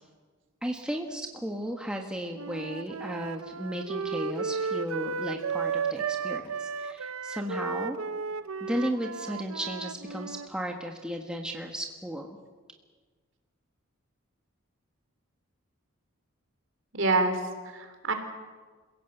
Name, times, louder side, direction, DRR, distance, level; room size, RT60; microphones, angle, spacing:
voice 1, 0.6-8.0 8.6-12.4, equal, 5° right, 2 dB, 1.5 m, -35 dB
Wind instrument woodwind instrument, 2.3-10.5, right 5 dB, 80° right, 0.8 m, -34 dB
voice 2, 16.9-18.1, right 3 dB, 60° right, 6 dB, 3.4 m, -27 dB
28.0 x 17.0 x 8.1 m, 1.4 s
head